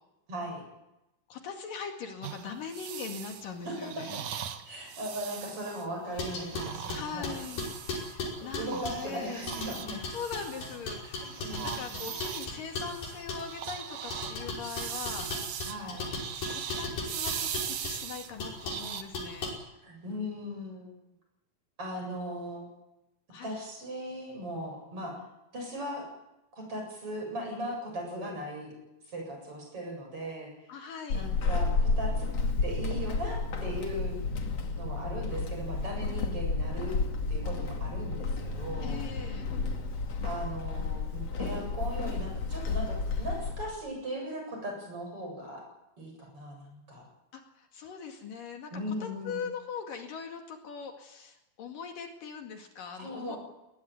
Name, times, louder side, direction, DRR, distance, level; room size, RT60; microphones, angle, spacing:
voice 1, 0.3-0.6 3.7-4.2 4.6-7.4 8.6-10.0 11.0-11.1 11.4-12.0 15.6-16.1 19.8-21.0 21.8-22.8 23.4-25.2 25.5-26.1 26.6-28.7 29.1-30.5 31.1-32.3 32.6-34.2 34.8-37.0 37.3-39.0 40.2-45.6 46.0-47.1 48.7-49.4 53.0-53.4, equal, 35° right, 1 dB, 9.1 m, -38 dB
voice 2, 1.3-4.1 6.9-9.5 10.1-15.3 16.5-19.5 23.3-23.6 30.7-31.3 38.8-39.5 47.3-48.7 49.0-53.4, left 6 dB, 65° left, 4 dB, 3.7 m, -41 dB
sound 1, 2.2-8.2 8.5-11.0 11.2-19.0, right 9 dB, 60° right, 2.6 m, -40 dB
sound 2, 6.2-9.1 9.5-13.5 14.1-18.0 18.4-18.8 19.1-19.5, left 2 dB, 85° left, 7.6 m, -37 dB
Walk footsteps / Squeak, 31.1-43.8, left 3 dB, 45° left, 3.0 m, -31 dB
21.5 x 19.0 x 9.5 m, 0.92 s
omnidirectional pair, 4.4 m